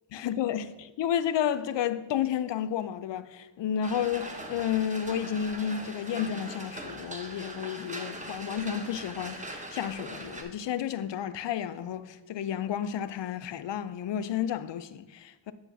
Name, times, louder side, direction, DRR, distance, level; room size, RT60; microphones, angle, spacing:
voice 1, 0.1-15.5, left 9 dB, 65° left, 0.6 m, -31 dB
sound 1, 3.8-10.4, right 1 dB, 15° right, 1.0 m, -41 dB
9.2 x 3.3 x 6.0 m
cardioid pair, 70°, 46 cm